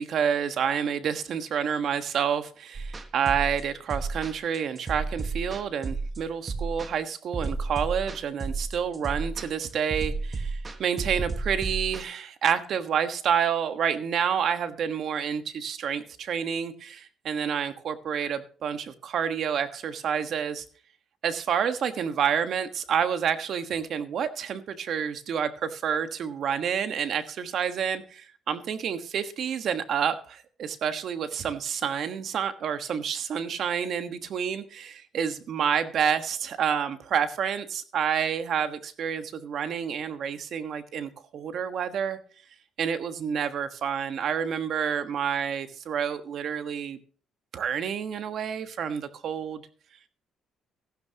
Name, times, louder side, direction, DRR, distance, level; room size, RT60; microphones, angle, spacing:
voice 1, 0.0-20.6 21.2-42.2 42.8-47.0 47.5-49.6, right 7 dB, 60° right, 1.4 m, -29 dB
sound 1, 2.7-12.0, right 3 dB, 30° right, 1.4 m, -32 dB
15.0 x 12.5 x 2.9 m
cardioid pair, 110°, 0 cm